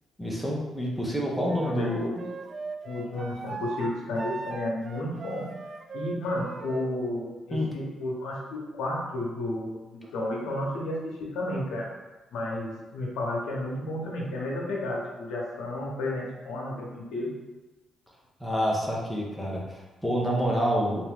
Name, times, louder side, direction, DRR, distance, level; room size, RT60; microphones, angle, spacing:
voice 1, 0.2-2.0 7.5-7.7 18.4-21.0, equal, ahead, -3 dB, 0.9 m, -28 dB
Wind instrument woodwind instrument, 1.5-6.9, right 4 dB, 40° right, 0.3 m, -39 dB
voice 2, 1.6-2.2 2.8-5.5 5.9-11.9 12.3-17.3, left 1 dB, 85° left, -3 dB, 0.9 m, -32 dB
3.6 x 2.9 x 3.5 m, 1.1 s
cardioid pair, 90°, 0 cm